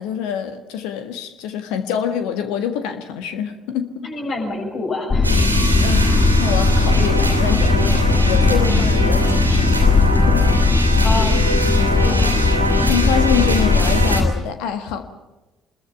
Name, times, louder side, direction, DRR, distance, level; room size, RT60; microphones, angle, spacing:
voice 1, 0.0-4.1 5.8-6.1 6.4-9.9 10.3-10.5 12.1-12.4 12.9-15.1, left 8 dB, 60° left, 9 dB, 1.6 m, -25 dB
voice 2, 4.0-5.5 11.0-12.4, left 2 dB, 45° left, 1 dB, 6.7 m, -28 dB
sound 1, 5.1-14.3, left 3 dB, 25° left, 1.3 m, -17 dB
sound 2, 5.2-14.2, right 1 dB, 90° right, 2.6 m, -23 dB
26.5 x 21.5 x 5.8 m, 1.1 s
figure-of-eight pair, 50°, 0 cm